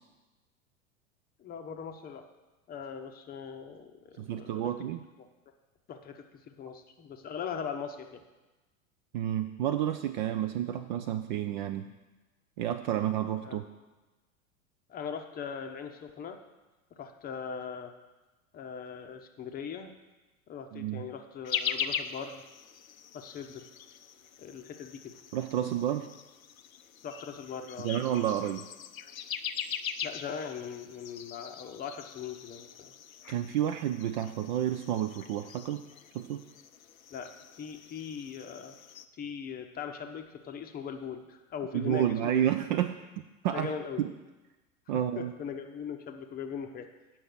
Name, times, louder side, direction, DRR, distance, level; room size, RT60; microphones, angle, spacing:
voice 1, 1.4-2.3 2.7-4.7 5.9-8.2 13.4-13.6 14.9-16.4 17.0-17.9 18.5-19.9 20.5-22.4 23.1-23.7 24.4-25.1 27.0-27.9 30.0-32.9 37.1-37.3 37.6-38.8 39.2-42.4 43.5-44.0 45.2-46.9, left 7 dB, 20° left, 5 dB, 0.7 m, -40 dB
voice 2, 4.2-5.0 9.1-11.9 12.6-13.7 20.7-21.0 25.3-26.1 27.8-28.7 33.3-35.8 36.1-36.5 41.7-43.0 43.4-43.7 44.0-44.1 44.9-45.3, right 11 dB, 35° right, 9 dB, 0.4 m, -30 dB
sound 1, 21.4-39.1, left 8 dB, 75° left, 0.6 m, -41 dB
7.7 x 5.9 x 6.6 m, 1.2 s
figure-of-eight pair, 85°, 42 cm